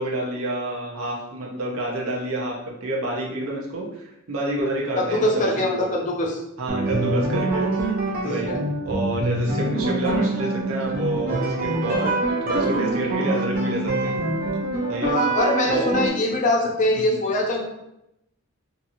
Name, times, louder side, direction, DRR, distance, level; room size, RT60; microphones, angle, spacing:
voice 1, 0.0-5.9 6.6-7.7 8.2-8.6 8.8-12.1 12.4-14.2 14.9-15.1 15.7-15.9 17.0-17.1, right 1 dB, 85° right, -3 dB, 0.7 m, -28 dB
voice 2, 5.0-6.4 8.2-8.6 15.0-17.6, left 1 dB, 35° left, -1 dB, 0.6 m, -23 dB
sound 1, 6.7-16.1, right 2 dB, 45° right, 0.6 m, -25 dB
2.8 x 2.7 x 2.6 m, 0.86 s
head